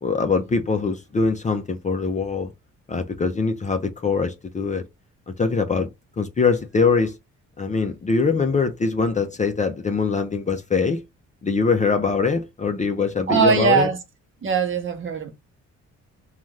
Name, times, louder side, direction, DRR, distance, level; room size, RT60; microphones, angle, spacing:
voice 1, 0.0-2.5 2.9-4.8 5.4-5.9 6.2-7.1 7.6-11.0 11.4-13.9, left 4 dB, 25° left, 0.5 m, -22 dB
voice 2, 13.3-14.0 14.4-15.3, right 5 dB, 40° right, 0.8 m, -20 dB
2.6 x 2.3 x 3.2 m
cardioid pair, 90°, 30 cm